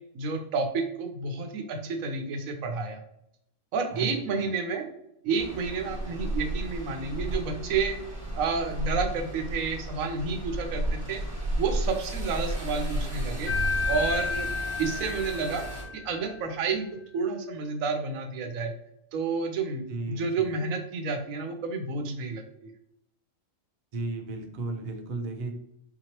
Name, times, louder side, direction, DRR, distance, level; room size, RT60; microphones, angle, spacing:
voice 1, 0.1-3.0 3.7-4.8 5.2-8.0 8.4-11.2 11.6-13.5 13.9-14.5 14.8-15.6 15.9-16.9 17.1-18.7 19.1-19.8 20.1-22.7, right 4 dB, 80° right, 5 dB, 1.1 m, -30 dB
voice 2, 3.9-4.5 19.9-20.6 23.9-25.5, right 2 dB, 50° right, 3 dB, 0.5 m, -35 dB
sound 1, 5.4-15.8, right 1 dB, 10° right, 1.3 m, -33 dB
sound 2, 13.5-16.3, left 4 dB, 60° left, 0.9 m, -31 dB
4.3 x 2.9 x 2.9 m, 0.75 s
omnidirectional pair, 1.4 m